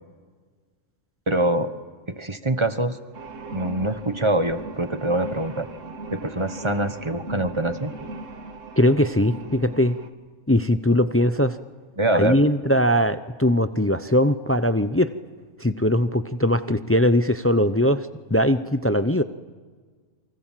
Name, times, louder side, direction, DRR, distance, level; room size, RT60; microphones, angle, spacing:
voice 1, 1.3-1.7 2.1-3.0 3.5-5.7 6.1-7.9 12.0-12.4, right 1 dB, 20° right, 9 dB, 1.3 m, -24 dB
sound 1, 3.1-10.1, right 2 dB, 65° right, 2.0 m, -38 dB
voice 2, 8.8-10.0 10.5-11.6 12.1-15.1 15.6-19.2, left 1 dB, 15° left, 11 dB, 0.5 m, -20 dB
28.5 x 24.5 x 7.6 m, 1.5 s
omnidirectional pair, 1.4 m